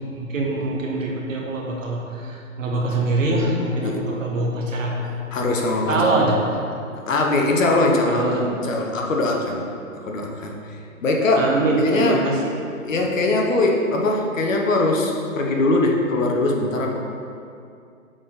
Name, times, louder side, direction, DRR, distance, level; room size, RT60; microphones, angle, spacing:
voice 1, 0.2-5.1 5.9-6.4 8.1-8.5 11.4-12.4, right 2 dB, 65° right, -1 dB, 1.3 m, -23 dB
voice 2, 5.3-6.1 7.1-9.6 10.0-10.6 11.0-11.5 11.8-12.2 12.8-17.0, left 2 dB, 65° left, 1 dB, 1.1 m, -21 dB
6.5 x 4.1 x 3.9 m, 2.4 s
figure-of-eight pair, 135°, 43 cm